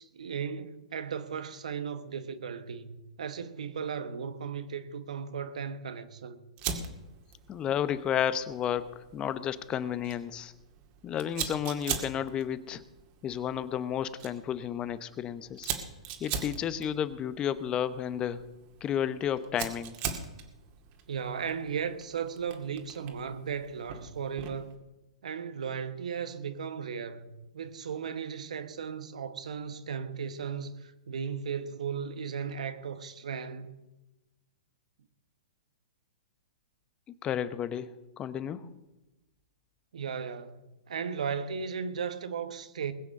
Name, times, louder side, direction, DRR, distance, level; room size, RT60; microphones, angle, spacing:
voice 1, 0.0-6.4 21.1-24.8 25.2-33.7 39.9-42.9, right 6 dB, 80° right, 1.3 m, -36 dB
Fire, 6.6-24.7, right 7 dB, 40° right, 2.1 m, -41 dB
voice 2, 7.5-8.9 9.1-10.5 11.0-12.8 13.2-15.7 16.2-18.4 18.8-19.9 37.2-37.9 38.2-38.7, left 9 dB, 25° left, 0.8 m, -32 dB
20.5 x 7.3 x 6.6 m
hypercardioid pair, 130°, 4 cm